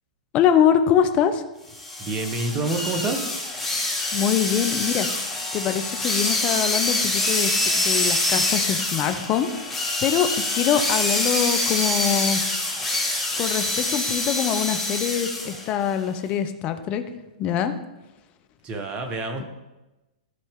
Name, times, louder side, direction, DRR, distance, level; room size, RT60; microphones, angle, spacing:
voice 1, 0.3-1.4 4.1-5.1 5.5-9.5 10.0-12.4 13.4-17.0 17.4-17.7, left 9 dB, 30° left, 8 dB, 0.8 m, -23 dB
sound 1, 1.7-15.6, left 2 dB, 5° left, 2.6 m, -25 dB
voice 2, 2.0-3.3 18.6-19.4, right 2 dB, 30° right, 5 dB, 1.3 m, -27 dB
13.0 x 4.3 x 3.7 m, 1.0 s
hypercardioid pair, 115°, 4 cm